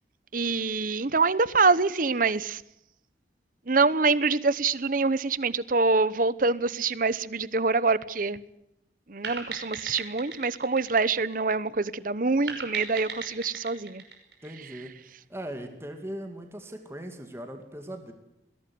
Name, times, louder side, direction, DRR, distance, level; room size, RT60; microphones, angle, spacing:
voice 1, 0.3-2.6 3.7-8.4 9.1-14.0, right 4 dB, 50° right, 18 dB, 0.9 m, -25 dB
writing a text message, 9.2-11.8 12.5-15.0, right 5 dB, 75° right, 5.5 m, -39 dB
voice 2, 14.4-14.9 15.3-18.1, right 1 dB, 15° right, 5 dB, 2.3 m, -39 dB
21.5 x 17.0 x 9.4 m, 0.84 s
head